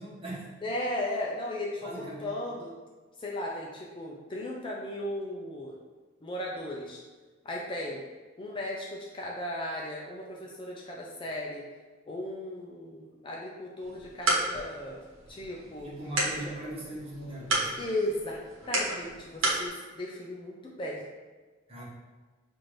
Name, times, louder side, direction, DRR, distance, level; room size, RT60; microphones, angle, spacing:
voice 1, 0.0-0.5 1.8-2.4 15.8-17.8 21.7-21.8, right 1 dB, 30° right, -6 dB, 1.1 m, -40 dB
voice 2, 0.6-2.7 3.2-5.7 6.2-7.0 7.4-8.0 8.4-11.6 12.1-15.0 15.3-15.9 16.4-16.5 17.8-18.4 18.7-21.0, left 1 dB, 25° left, -2 dB, 0.4 m, -36 dB
sound 1, 13.8-19.7, right 2 dB, 80° right, 1.0 m, -32 dB
5.9 x 2.6 x 3.1 m, 1.3 s
head